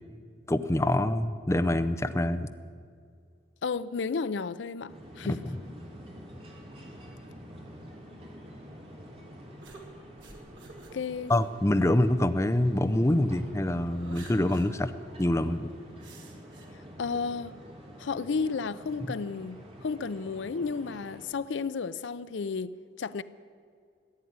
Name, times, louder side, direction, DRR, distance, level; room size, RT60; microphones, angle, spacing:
voice 1, 0.5-2.5 11.3-14.9 15.2-15.7, left 1 dB, 15° left, 0.5 m, -25 dB
voice 2, 3.6-5.4 10.9-11.3 16.7-17.5 18.0-23.2, left 5 dB, 85° left, 0.5 m, -33 dB
sound 1, 4.9-21.3, equal, 30° right, 2.5 m, -47 dB
sound 2, 9.6-12.9 13.4-14.7 15.1-15.2 16.0-16.7, right 3 dB, 90° right, 2.5 m, -51 dB
15.0 x 9.8 x 9.4 m
head